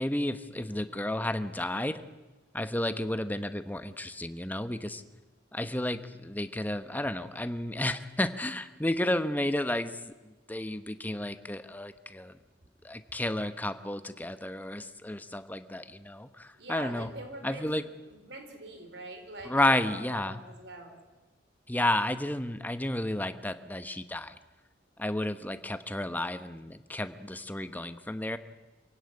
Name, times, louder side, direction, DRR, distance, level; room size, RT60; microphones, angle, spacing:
voice 1, 0.0-2.0 2.5-5.0 5.5-12.4 12.8-17.1 17.4-17.8 19.5-20.4 21.7-24.4 25.0-28.4, left 1 dB, 10° left, 10 dB, 1.0 m, -32 dB
voice 2, 16.6-21.0, right 2 dB, 70° right, 5 dB, 4.5 m, -44 dB
26.5 x 16.5 x 9.7 m, 1.2 s
head